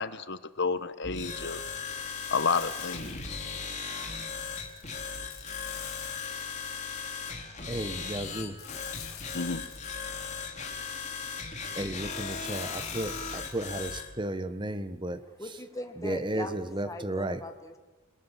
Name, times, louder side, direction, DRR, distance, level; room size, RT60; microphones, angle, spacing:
voice 1, 0.0-1.6 2.3-3.4 9.3-9.6, left 4 dB, 55° left, 13 dB, 1.3 m, -31 dB
sound 1, 1.0-14.1, left 5 dB, 35° left, 3.4 m, -37 dB
sound 2, 2.2-3.6 4.3-6.8 8.6-10.3 12.1-13.8, left 11 dB, 70° left, 4.2 m, -47 dB
voice 2, 7.7-8.6 11.8-15.2 16.0-17.4, right 1 dB, 20° right, 11 dB, 1.3 m, -33 dB
voice 3, 15.4-17.8, left 1 dB, 15° left, 5 dB, 2.0 m, -40 dB
28.5 x 21.5 x 7.4 m, 1.3 s
head